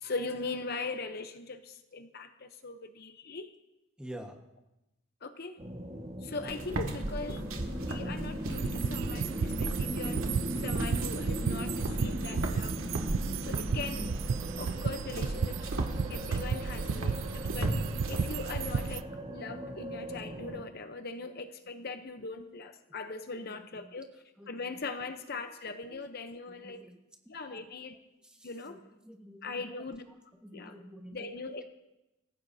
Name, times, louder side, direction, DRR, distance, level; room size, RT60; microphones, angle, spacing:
voice 1, 0.0-3.5 5.2-5.6 6.2-10.2 10.6-12.8 13.4-14.1 14.6-15.7 16.1-17.7 18.1-24.1 24.5-26.8 27.3-28.0 28.4-28.8 29.4-30.0 30.5-30.7 31.1-31.6, left 3 dB, 50° left, 8 dB, 0.8 m, -40 dB
voice 2, 4.0-4.4 22.2-22.3 22.9-23.0 23.4-24.0 24.4-24.7 25.6-26.0 26.5-27.0 27.5-27.6 28.2-28.8 29.0-29.8 30.4-31.3, right 1 dB, 5° right, 2 dB, 1.4 m, -50 dB
sound 1, 5.6-20.6, equal, 30° right, 1.7 m, -39 dB
sound 2, 6.4-19.0, right 1 dB, 90° right, 2.1 m, -38 dB
sound 3, 8.5-19.0, right 6 dB, 65° right, 0.4 m, -34 dB
26.0 x 15.5 x 2.8 m, 0.95 s
head